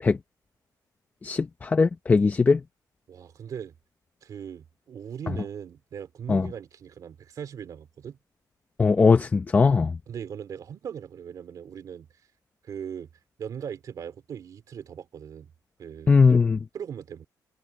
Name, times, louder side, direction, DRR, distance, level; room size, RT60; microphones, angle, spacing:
voice 1, 1.2-2.6 6.3-6.5 8.8-9.9 16.1-16.6, left 4 dB, 25° left, 0.8 m, -20 dB
voice 2, 3.1-3.7 4.2-8.2 10.1-12.1 12.6-13.1 13.4-15.5 15.8-16.2 16.7-17.3, right 8 dB, 55° right, 2.6 m, -39 dB
cardioid pair, 145°, 7 cm